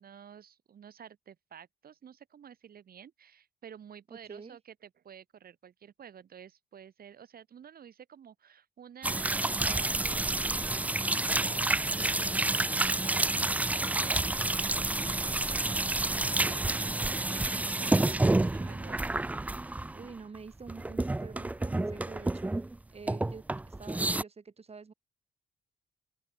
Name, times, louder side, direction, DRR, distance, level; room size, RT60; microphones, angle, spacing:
voice 1, 0.0-10.9 11.3-19.1, right 8 dB, 60° right, 2.7 m, -51 dB
voice 2, 4.1-4.6 17.8-17.9 18.5-18.8 19.9-22.5 22.9-24.9, right 5 dB, 35° right, 5.4 m, -48 dB
sound 1, 9.0-20.4 20.7-22.8 23.1-24.2, right 2 dB, 10° right, 0.3 m, -29 dB
open air
cardioid pair, 85°, 17 cm